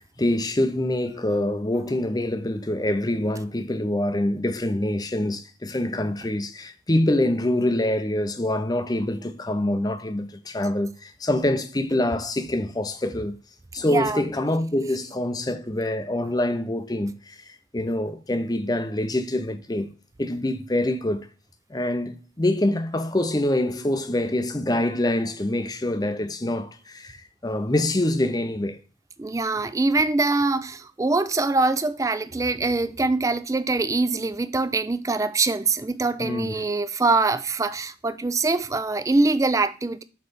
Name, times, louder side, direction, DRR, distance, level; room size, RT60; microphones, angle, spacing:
voice 1, 0.0-13.4 13.7-19.9 20.2-21.3 21.7-28.8 36.2-36.6, left 1 dB, 20° left, 0.6 m, -25 dB
voice 2, 13.9-14.2 29.2-40.0, right 3 dB, 15° right, 0.3 m, -23 dB
7.8 x 3.2 x 5.3 m
head